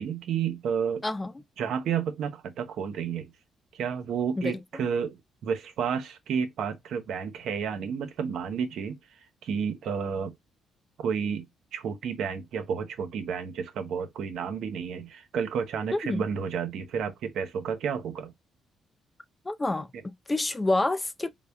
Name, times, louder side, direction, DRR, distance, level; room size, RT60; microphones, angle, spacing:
voice 1, 0.0-1.0 1.6-3.3 3.7-9.0 9.4-10.3 11.0-18.3, right 7 dB, 75° right, 0.8 m, -31 dB
voice 2, 4.4-4.8 15.9-16.2 19.5-21.3, left 2 dB, 20° left, 0.4 m, -28 dB
4.1 x 2.1 x 3.4 m
cardioid pair, 90°, 0 cm